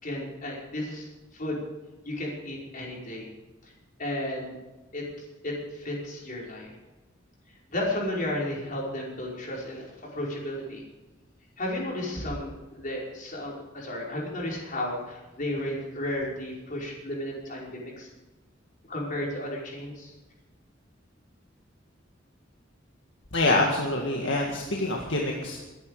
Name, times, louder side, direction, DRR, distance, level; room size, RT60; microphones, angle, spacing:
voice 1, 0.0-1.6 2.0-3.3 4.0-4.5 4.9-6.7 7.7-10.8 11.6-18.1 18.9-20.1, left 1 dB, 45° left, -3 dB, 5.1 m, -33 dB
voice 2, 23.3-25.6, left 2 dB, 65° left, -1 dB, 2.0 m, -26 dB
23.0 x 10.5 x 5.0 m, 1.1 s
head